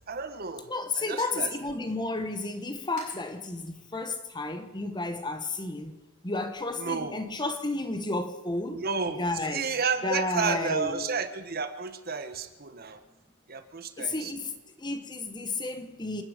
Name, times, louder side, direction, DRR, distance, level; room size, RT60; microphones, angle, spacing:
voice 1, 0.1-0.7 1.1-1.5 6.8-7.1 8.7-9.2 9.5-13.0 13.5-14.3, right 5 dB, 50° right, 1.2 m, -31 dB
voice 2, 0.6-6.0 6.2-8.8 9.2-9.7 10.0-11.2 14.0-16.2, left 2 dB, 20° left, 1.2 m, -32 dB
sound 1, 1.0-6.2, left 2 dB, 55° left, 7.7 m, -57 dB
28.5 x 10.0 x 5.1 m
head